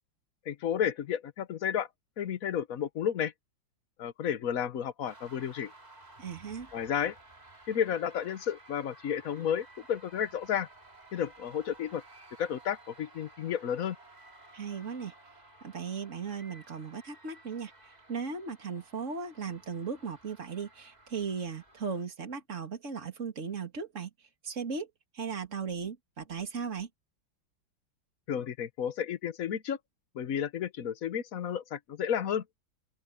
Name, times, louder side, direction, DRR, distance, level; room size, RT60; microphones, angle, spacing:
voice 1, 0.5-1.9 2.2-3.3 4.0-5.7 6.7-7.1 7.7-10.7 11.1-12.0 12.4-14.0 28.3-29.8 30.1-32.4, left 9 dB, 55° left, 1.3 m, -32 dB
sound 1, 5.0-22.0, right 2 dB, 20° right, 2.6 m, -55 dB
voice 2, 6.2-6.7 14.5-15.1 15.6-24.9 25.1-26.9, right 5 dB, 40° right, 2.9 m, -37 dB
open air
omnidirectional pair, 2.0 m